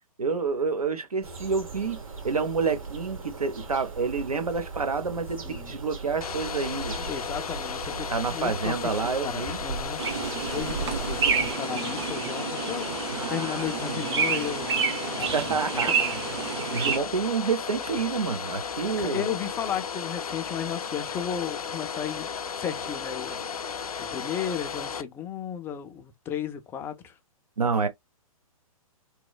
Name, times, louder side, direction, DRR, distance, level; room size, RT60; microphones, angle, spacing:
voice 1, 0.2-2.0 2.2-7.0 8.1-9.6 13.1-14.0 15.3-16.1 16.7-19.2 27.6-27.9, right 5 dB, 85° right, 0.7 m, -28 dB
sound 1, 1.2-11.5, right 4 dB, 65° right, 1.8 m, -38 dB
voice 2, 5.4-5.7 7.0-14.7 15.2-15.5 15.9-16.0 19.0-22.3 22.6-23.6 24.0-27.1, left 9 dB, 10° left, 0.3 m, -34 dB
Domestic sounds home sounds, 6.2-25.0, left 6 dB, 80° left, 0.5 m, -35 dB
sound 2, 10.0-17.0, right 6 dB, 50° right, 0.9 m, -29 dB
3.0 x 2.0 x 2.2 m
figure-of-eight pair, 120°, 19 cm